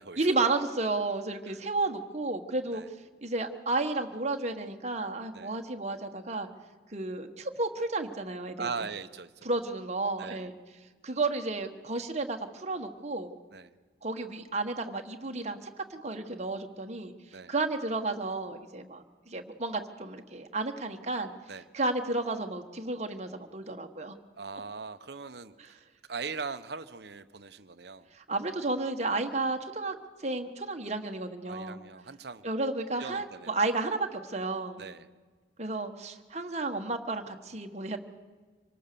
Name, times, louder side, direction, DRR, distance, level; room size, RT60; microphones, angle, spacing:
voice 1, 0.2-2.8 3.2-6.5 6.9-8.7 9.4-10.5 11.0-13.3 14.0-17.1 17.5-21.3 21.7-24.2 28.1-31.8 32.4-34.8 35.6-38.0, right 2 dB, 35° right, 5 dB, 1.4 m, -32 dB
voice 2, 8.6-9.5 10.2-10.4 13.5-13.7 17.3-17.5 21.5-21.6 24.4-25.8 26.1-28.1 31.5-32.4 33.0-33.5 34.8-35.1, right 5 dB, 60° right, 12 dB, 0.9 m, -40 dB
25.5 x 18.5 x 6.9 m, 1.4 s
head